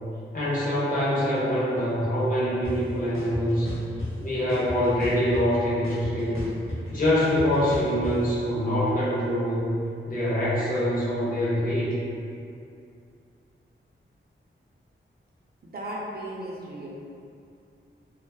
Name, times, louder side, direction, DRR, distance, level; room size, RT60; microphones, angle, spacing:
voice 1, 0.3-3.7 4.2-6.5 6.9-9.7 10.1-11.9, equal, 40° left, -9 dB, 0.8 m, -25 dB
sound 1, 2.6-2.7 3.1-4.1 4.5-5.6 5.8-8.1, left 1 dB, 75° left, 0.7 m, -34 dB
voice 2, 15.6-16.9, right 1 dB, 45° right, -5 dB, 0.5 m, -35 dB
2.4 x 2.2 x 2.3 m, 2.5 s
wide cardioid pair, 95°, 21 cm